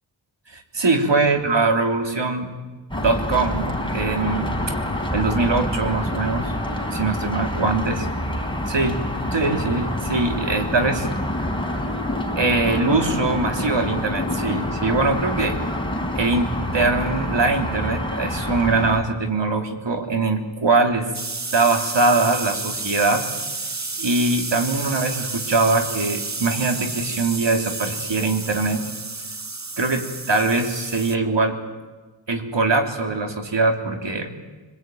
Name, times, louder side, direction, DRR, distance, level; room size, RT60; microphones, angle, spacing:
voice 1, 0.5-2.5 3.0-4.8 5.1-6.5 6.9-8.1 8.7-9.0 9.3-11.1 12.4-15.6 16.1-21.1 21.5-23.3 24.0-28.8 29.8-31.6 32.3-34.3, right 3 dB, 65° right, 4 dB, 3.3 m, -22 dB
sound 1, 2.9-19.0, left 1 dB, 10° left, 4.4 m, -27 dB
sound 2, 21.1-31.2, right 3 dB, 35° right, 1.6 m, -31 dB
24.5 x 22.0 x 9.2 m, 1.3 s
wide cardioid pair, 60°, 46 cm